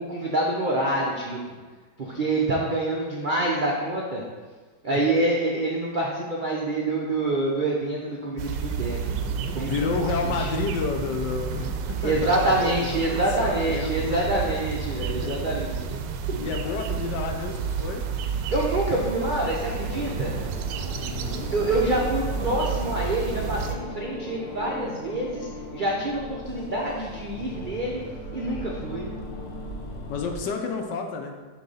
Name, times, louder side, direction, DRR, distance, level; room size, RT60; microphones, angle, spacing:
voice 1, 0.0-1.4 2.0-4.2 4.8-9.0 9.5-9.7 10.0-10.1 10.4-10.5 12.0-15.8 16.4-16.5 18.5-20.4 21.4-25.5 25.7-28.0 28.3-29.1, right 1 dB, 60° right, -3 dB, 0.5 m, -26 dB
sound 1, 8.4-23.7, right 6 dB, 80° right, 1.2 m, -30 dB
voice 2, 9.7-14.2 15.0-15.5 16.4-18.0 21.0-21.5 30.1-31.3, left 5 dB, 75° left, 4 dB, 1.3 m, -31 dB
sound 2, 19.4-30.4, left 1 dB, 50° left, 0.8 m, -38 dB
6.9 x 3.2 x 5.4 m, 1.4 s
omnidirectional pair, 1.9 m